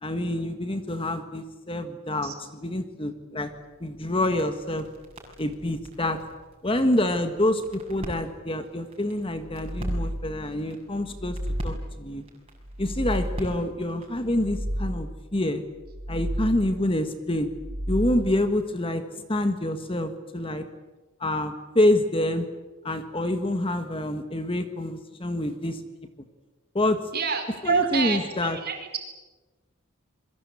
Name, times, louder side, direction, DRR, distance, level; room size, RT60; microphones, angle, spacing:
voice 1, 0.0-3.5 3.8-4.8 5.4-6.2 6.6-11.4 11.6-12.2 12.8-15.6 16.1-17.5 17.9-20.6 21.2-22.5 22.8-25.8 26.7-27.1 27.6-28.6, left 1 dB, 25° left, 8 dB, 1.6 m, -27 dB
sound 1, 3.4-14.2, equal, 25° right, 6.9 m, -44 dB
sound 2, 9.4-10.5 11.0-12.1 12.6-13.7 14.2-15.3 15.8-16.8 17.4-18.5, equal, 80° right, 3.4 m, -32 dB
voice 2, 27.1-29.0, right 5 dB, 45° right, 5 dB, 4.8 m, -27 dB
28.0 x 22.5 x 8.6 m, 1.2 s
head